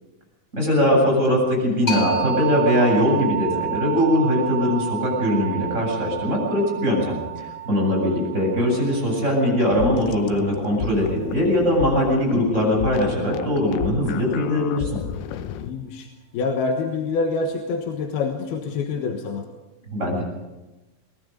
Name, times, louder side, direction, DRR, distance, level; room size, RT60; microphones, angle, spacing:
voice 1, 0.5-15.0 19.9-20.2, left 1 dB, 15° right, -2 dB, 7.9 m, -21 dB
sound 1, 1.9-11.3, right 9 dB, 30° left, 1.1 m, -31 dB
sound 2, 9.7-15.7, left 9 dB, 85° left, 1.9 m, -33 dB
voice 2, 15.6-16.1 16.3-19.5, left 4 dB, 70° left, 3 dB, 3.1 m, -26 dB
25.5 x 20.0 x 5.3 m, 1.1 s
omnidirectional pair, 5.1 m